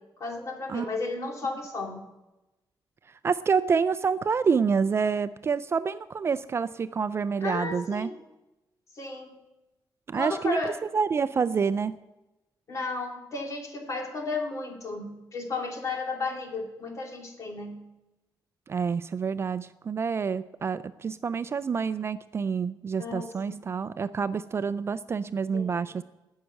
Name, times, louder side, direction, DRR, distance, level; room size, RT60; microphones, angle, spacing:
voice 1, 0.2-2.0 7.4-8.2 8.9-9.4 10.1-10.7 12.7-17.8 23.0-23.6 25.5-25.9, left 3 dB, 45° left, 2 dB, 2.2 m, -34 dB
voice 2, 3.2-8.1 10.1-12.0 18.7-26.0, right 5 dB, 35° right, 14 dB, 0.3 m, -28 dB
14.0 x 6.5 x 9.0 m, 1.0 s
wide cardioid pair, 160°, 8 cm